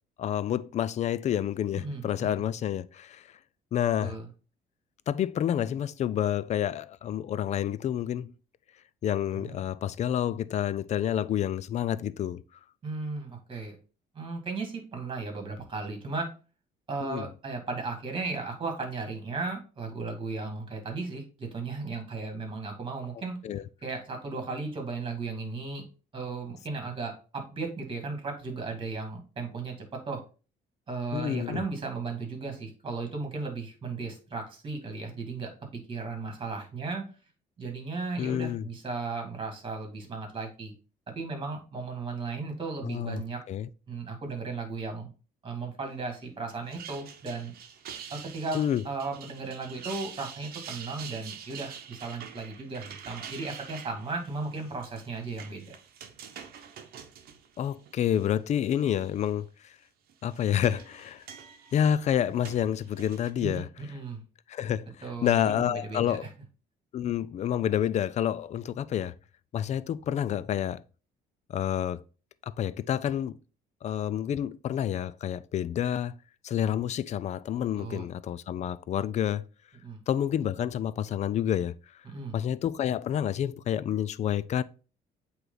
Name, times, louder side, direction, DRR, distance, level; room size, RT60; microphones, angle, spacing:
voice 1, 0.2-3.3 3.7-4.2 5.1-8.3 9.0-12.4 17.0-17.2 23.4-23.6 31.1-31.6 38.2-38.7 42.8-43.2 43.5-43.7 48.5-48.8 57.6-59.7 60.2-61.2 61.7-63.7 64.5-64.9 65.2-66.3 66.9-69.1 69.5-70.8 71.5-72.0 72.4-73.4 73.8-76.2 76.4-79.4 80.1-81.7 82.3-84.6, left 10 dB, 45° left, 0.4 m, -29 dB
voice 2, 12.8-13.7 14.1-16.3 16.9-23.4 23.8-25.8 26.1-30.2 30.9-35.5 35.9-37.1 37.6-40.7 41.2-43.4 43.9-45.1 45.4-47.5 48.1-55.7 63.4-64.2 65.0-66.3 77.8-78.1 79.8-80.0 82.0-82.4, right 3 dB, 30° right, 2.2 m, -35 dB
sound 1, 46.5-58.3 58.7-59.3 60.1-63.3, right 8 dB, 60° right, 0.9 m, -46 dB
8.0 x 3.2 x 3.9 m
cardioid pair, 110°, 17 cm